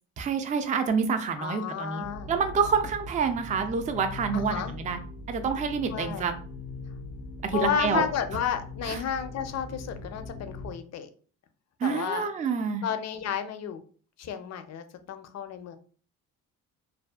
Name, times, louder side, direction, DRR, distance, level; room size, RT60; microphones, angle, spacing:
voice 1, 0.2-5.0 5.3-6.3 7.4-8.0 8.8-9.0 11.8-12.8, right 5 dB, 20° right, 8 dB, 0.3 m, -27 dB
voice 2, 1.4-2.3 4.3-4.7 5.9-6.3 7.5-11.1 11.8-12.3 12.8-13.8 14.2-15.8, left 8 dB, 50° left, 8 dB, 0.5 m, -32 dB
sound 1, 2.0-10.7, left 2 dB, 60° right, 1.3 m, -41 dB
2.5 x 2.3 x 2.2 m, 0.42 s
supercardioid pair, 75°, 36 cm